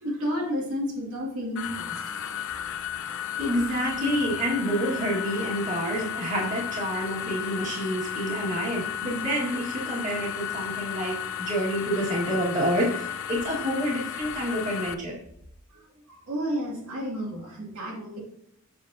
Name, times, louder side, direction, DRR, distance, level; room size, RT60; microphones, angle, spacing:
voice 1, 0.0-1.9 16.3-18.2, equal, 85° right, -3 dB, 2.2 m, -31 dB
sound 1, 1.5-14.9, left 9 dB, 65° left, 0.5 m, -34 dB
voice 2, 3.4-15.2, equal, 35° right, -4 dB, 1.6 m, -28 dB
7.2 x 6.6 x 2.6 m, 0.72 s
head